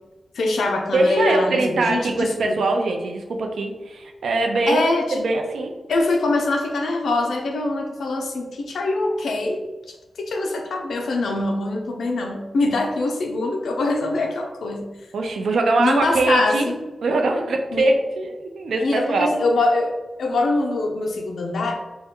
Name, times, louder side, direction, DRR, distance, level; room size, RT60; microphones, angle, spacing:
voice 1, 0.3-2.6 4.7-5.2 5.9-14.8 15.8-16.8 17.7-17.9 18.7-21.8, left 2 dB, 80° left, 2 dB, 0.6 m, -23 dB
voice 2, 0.9-4.8 5.1-5.7 15.1-16.7 17.0-19.3, right 2 dB, 80° right, 3 dB, 0.5 m, -22 dB
4.1 x 2.2 x 3.7 m, 1.2 s
wide cardioid pair, 170°, 0 cm